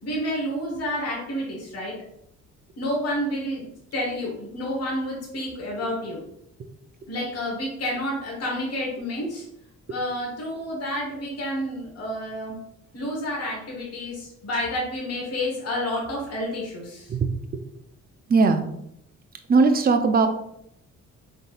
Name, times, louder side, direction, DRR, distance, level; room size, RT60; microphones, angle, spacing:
voice 1, 0.0-2.0 2.8-3.7 3.9-6.2 7.1-9.4 9.9-12.6 12.9-17.1, left 1 dB, 55° left, -3 dB, 1.5 m, -29 dB
voice 2, 18.3-18.6 19.5-20.3, right 4 dB, 30° right, 7 dB, 0.5 m, -18 dB
3.8 x 3.8 x 2.5 m, 0.76 s
cardioid pair, 90°, 30 cm